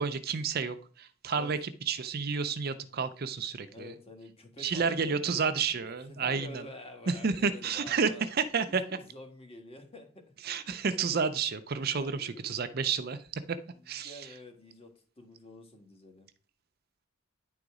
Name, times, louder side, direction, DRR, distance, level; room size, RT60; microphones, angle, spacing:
voice 1, 0.0-1.6 1.9-3.9 4.6-6.5 7.1-8.8 10.4-13.2 13.5-13.6 13.9-14.2, right 5 dB, 45° right, 11 dB, 0.5 m, -30 dB
voice 2, 3.7-8.3 8.7-10.3 11.7-12.6 13.7-16.3, left 1 dB, 30° left, 4 dB, 1.5 m, -49 dB
9.8 x 4.0 x 4.8 m, 0.43 s
head